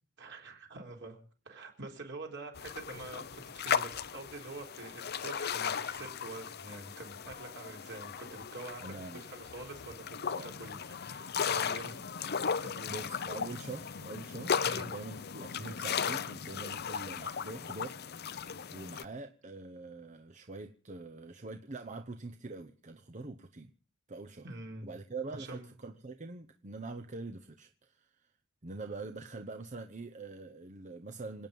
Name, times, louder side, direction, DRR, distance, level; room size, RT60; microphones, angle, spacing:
voice 1, 0.2-1.2 1.5-11.9 12.5-12.9 14.6-14.9 24.4-24.9 25.4-25.7, right 2 dB, 60° right, 2 dB, 4.0 m, -46 dB
sound 1, 2.6-19.0, left 7 dB, 55° left, 0.7 m, -36 dB
voice 2, 8.8-9.3 10.3-10.5 11.9-12.0 12.9-23.7 24.1-24.4 24.8-28.3 28.6-31.5, right 3 dB, 35° right, 6 dB, 0.9 m, -44 dB
27.5 x 9.3 x 5.3 m, 0.42 s
head